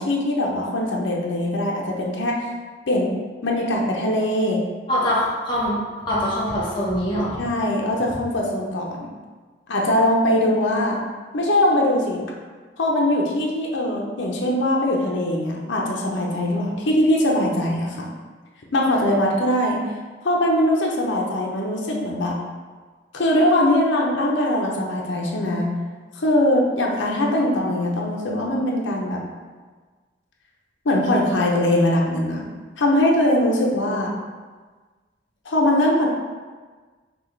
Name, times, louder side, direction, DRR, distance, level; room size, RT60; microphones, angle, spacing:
voice 1, 0.0-2.5 2.9-3.1 3.4-4.6 7.4-9.1 9.7-11.0 11.3-12.2 12.8-18.0 18.7-19.8 20.2-22.4 23.1-25.7 26.2-29.2 30.8-32.5 32.8-34.1 35.5-36.1, left 1 dB, 85° left, -2 dB, 0.7 m, -21 dB
voice 2, 4.9-5.8 6.1-7.4, equal, 25° left, -8 dB, 1.1 m, -23 dB
6.0 x 2.4 x 3.2 m, 1.4 s
head